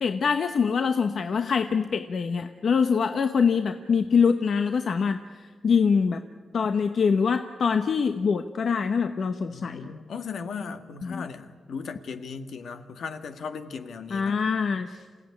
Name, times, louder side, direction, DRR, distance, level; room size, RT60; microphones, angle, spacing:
voice 1, 0.0-6.2 6.5-9.9 11.0-11.2 14.1-15.0, left 6 dB, 55° left, 7 dB, 0.9 m, -24 dB
voice 2, 9.5-14.4, left 5 dB, 70° left, 8 dB, 1.6 m, -37 dB
27.5 x 16.5 x 9.7 m, 1.5 s
wide cardioid pair, 135°, 0 cm